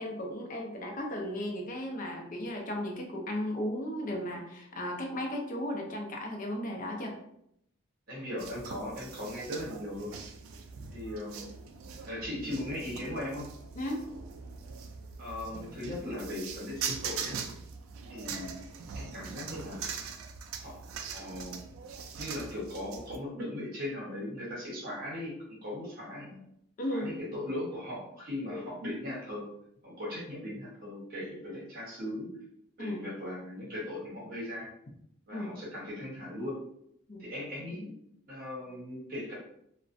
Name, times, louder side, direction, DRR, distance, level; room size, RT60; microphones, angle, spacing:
voice 1, 0.0-7.2 13.8-14.1 26.8-27.1 28.5-28.6 32.8-33.0 35.3-35.5 37.1-37.3, left 1 dB, 40° left, 1 dB, 0.4 m, -35 dB
voice 2, 8.1-10.2 10.9-11.6 12.0-13.5 15.2-17.4 18.1-18.6 18.9-19.8 20.6-20.8 21.1-21.6 22.2-26.4 26.9-29.5 29.8-32.3 32.8-34.7 35.3-36.6 37.2-37.9 38.3-39.3, left 1 dB, 45° right, -6 dB, 0.9 m, -38 dB
sound 1, 8.4-23.2, right 6 dB, 75° right, 0.3 m, -42 dB
2.4 x 2.0 x 2.5 m, 0.74 s
head